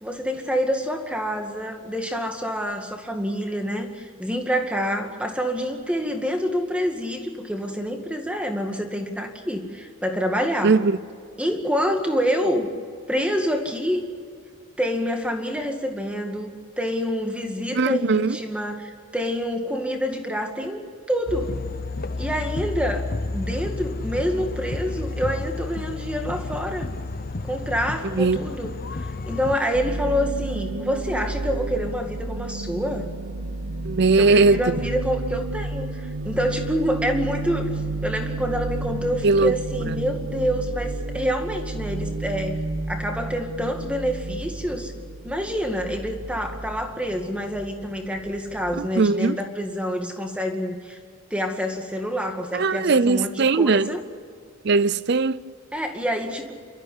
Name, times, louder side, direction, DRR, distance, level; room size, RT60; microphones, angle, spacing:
voice 1, 0.0-10.8 11.4-12.7 13.1-14.0 14.8-21.6 22.2-23.1 23.3-26.9 27.4-33.1 34.2-37.7 38.0-42.6 42.9-44.9 45.2-51.0 51.3-54.0 55.7-56.5, equal, 5° right, 2.1 m, -27 dB
voice 2, 10.6-11.0 17.7-18.4 28.1-28.4 33.8-34.8 39.2-39.5 39.9-40.0 48.8-49.4 52.5-53.9 54.6-55.5, right 4 dB, 50° right, 0.5 m, -19 dB
sound 1, 21.3-29.6, left 2 dB, 45° left, 0.8 m, -31 dB
sound 2, 29.7-49.1, right 2 dB, 70° right, 1.0 m, -32 dB
28.5 x 13.5 x 9.6 m
head